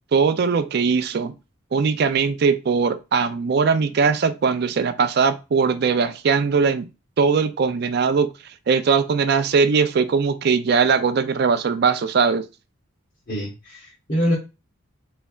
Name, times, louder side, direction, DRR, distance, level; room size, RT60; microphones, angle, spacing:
voice 1, 0.1-1.3 1.7-6.9 7.2-8.3 8.7-12.4, right 5 dB, 50° right, 0.4 m, -20 dB
voice 2, 13.3-14.3, equal, 45° left, 1.2 m, -24 dB
3.9 x 3.2 x 2.3 m
head